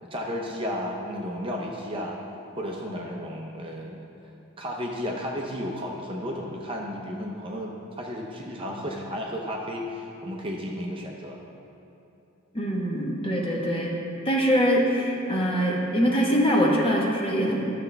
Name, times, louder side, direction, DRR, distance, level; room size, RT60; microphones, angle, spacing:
voice 1, 0.0-2.2 2.6-4.1 4.6-11.4, equal, 25° right, -1 dB, 0.7 m, -33 dB
voice 2, 12.5-14.0 14.2-17.7, equal, 25° left, -3 dB, 1.1 m, -23 dB
12.5 x 6.9 x 3.3 m, 2.8 s
head